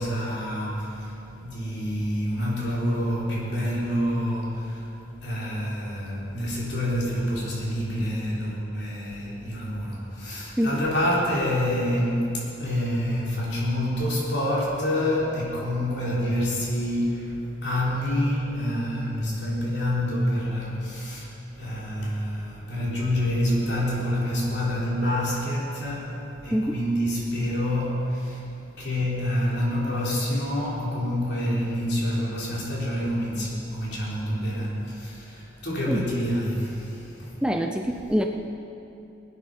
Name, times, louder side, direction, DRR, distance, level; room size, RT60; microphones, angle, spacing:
voice 1, 0.0-4.9 5.2-26.1 26.4-28.5 28.8-37.4, equal, 60° left, -5 dB, 3.9 m, -27 dB
voice 2, 37.4-38.3, equal, 5° right, 4 dB, 0.4 m, -25 dB
18.5 x 10.0 x 5.6 m, 2.8 s
head